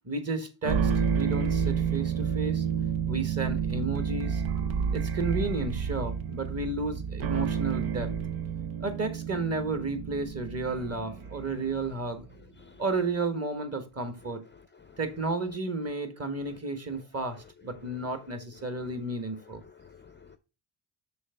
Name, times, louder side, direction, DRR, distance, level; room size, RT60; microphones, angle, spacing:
voice 1, 0.0-2.6 3.1-4.4 4.9-8.1 8.8-12.2 12.8-14.4 15.0-19.6, right 3 dB, 30° right, 1.5 m, -32 dB
sound 1, 0.6-12.0, right 7 dB, 70° right, 0.9 m, -30 dB
voice 2, 14.5-15.0 17.9-18.0 19.6-20.4, left 6 dB, 25° left, 0.5 m, -53 dB
6.3 x 3.5 x 5.7 m
cardioid pair, 70°, 49 cm